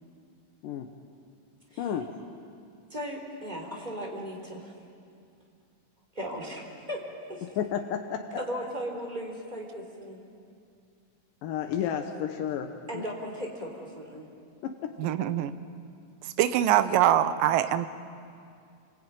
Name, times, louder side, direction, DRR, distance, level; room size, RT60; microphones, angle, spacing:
voice 1, 1.8-2.1 7.4-8.3 11.4-13.0 14.6-15.0, left 9 dB, 75° left, 5 dB, 2.6 m, -32 dB
voice 2, 2.9-4.7 6.2-7.0 7.3-7.5 8.4-10.2 12.9-14.3, equal, 10° right, 0 dB, 3.5 m, -37 dB
voice 3, 15.0-15.5 16.2-17.9, right 11 dB, 80° right, 11 dB, 2.5 m, -23 dB
28.0 x 22.0 x 9.0 m, 2.4 s
omnidirectional pair, 4.0 m